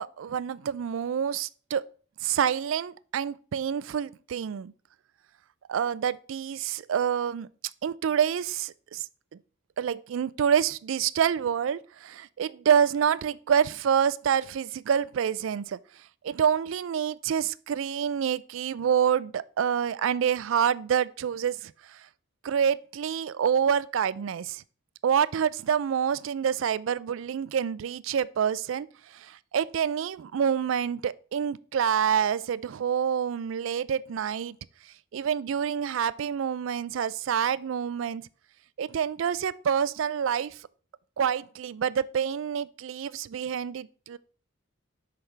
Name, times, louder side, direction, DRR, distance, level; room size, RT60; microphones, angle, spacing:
voice 1, 0.0-1.9 2.2-4.7 5.7-7.5 7.8-9.1 9.8-15.8 16.2-21.7 22.4-24.6 25.0-28.9 29.1-34.5 35.1-38.3 38.8-40.5 41.2-44.2, right 8 dB, 70° right, 0.3 m, -27 dB
8.4 x 5.8 x 3.3 m
head